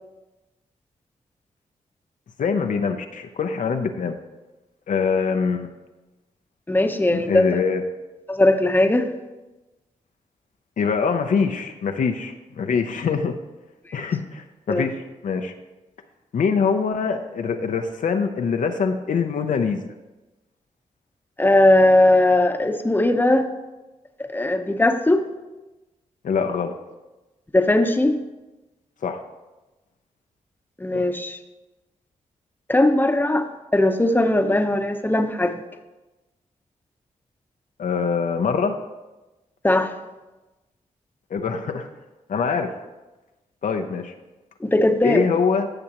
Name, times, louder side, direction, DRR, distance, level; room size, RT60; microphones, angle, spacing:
voice 1, 2.4-4.2 4.9-5.7 7.1-7.8 10.8-13.3 13.9-15.5 16.3-19.8 26.2-26.8 29.0-29.2 30.9-31.0 37.8-38.8 41.3-41.9 42.3-42.7 43.6-44.1 45.0-45.7, left 5 dB, 70° left, 5 dB, 0.7 m, -24 dB
voice 2, 6.7-7.4 8.3-9.1 13.9-14.1 14.7-14.9 21.4-23.5 24.3-25.2 27.5-28.2 30.8-31.4 32.7-33.5 33.7-35.5 39.6-39.9 44.6-45.2, left 1 dB, 15° left, 6 dB, 0.9 m, -19 dB
15.5 x 6.1 x 3.0 m, 1.1 s
cardioid pair, 50°, 14 cm